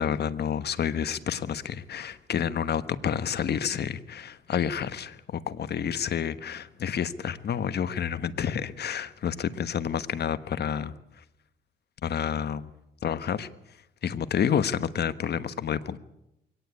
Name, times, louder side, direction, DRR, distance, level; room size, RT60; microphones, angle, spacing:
voice 1, 0.0-10.9 12.0-12.7 13.0-13.5 14.0-16.0, left 8 dB, 55° left, 14 dB, 1.3 m, -29 dB
23.0 x 18.0 x 8.4 m, 0.82 s
cardioid pair, 90°, 20 cm